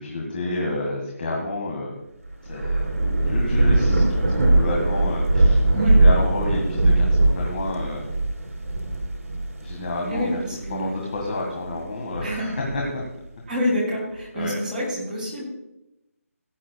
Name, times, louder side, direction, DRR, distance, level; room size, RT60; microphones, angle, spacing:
voice 1, 0.0-2.0 2.4-2.9 3.2-8.1 9.6-10.4 10.7-13.0 14.3-14.6, left 2 dB, 35° left, -1 dB, 1.8 m, -29 dB
Thunder / Rain, 2.3-11.2 11.7-13.0, right 2 dB, 60° right, 3.1 m, -21 dB
voice 2, 10.1-10.9 12.2-12.6 13.5-15.4, equal, 5° right, -8 dB, 2.6 m, -27 dB
17.0 x 9.9 x 2.3 m, 0.88 s
hypercardioid pair, 175°, 8 cm